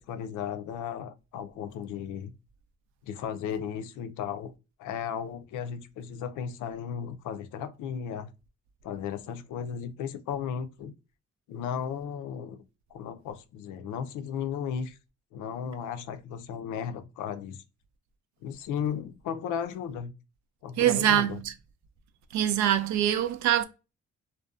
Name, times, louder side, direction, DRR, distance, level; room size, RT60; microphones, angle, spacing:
voice 1, 0.0-2.3 3.0-4.5 4.8-8.3 8.8-10.9 11.5-12.6 12.9-15.0 15.3-17.6 18.4-20.1 20.6-21.4, left 8 dB, 85° left, 0.5 m, -35 dB
voice 2, 20.8-21.5 22.3-23.6, right 11 dB, 70° right, 0.4 m, -24 dB
2.6 x 2.2 x 2.3 m
cardioid pair, 90°, 30 cm